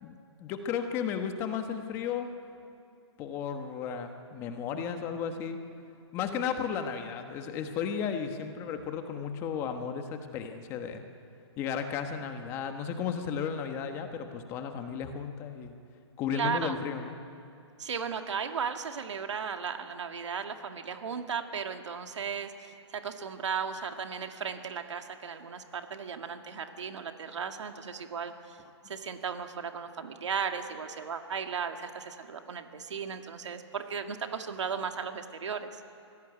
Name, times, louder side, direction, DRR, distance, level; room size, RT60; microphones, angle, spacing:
voice 1, 0.0-2.3 3.2-5.6 6.1-11.0 11.6-15.7 16.2-17.2, left 7 dB, 15° left, 7 dB, 1.2 m, -34 dB
voice 2, 16.3-16.8 17.8-28.6 28.9-35.7, right 6 dB, 75° right, 6 dB, 2.1 m, -36 dB
23.5 x 16.5 x 9.9 m, 2.6 s
hypercardioid pair, 170°, 15 cm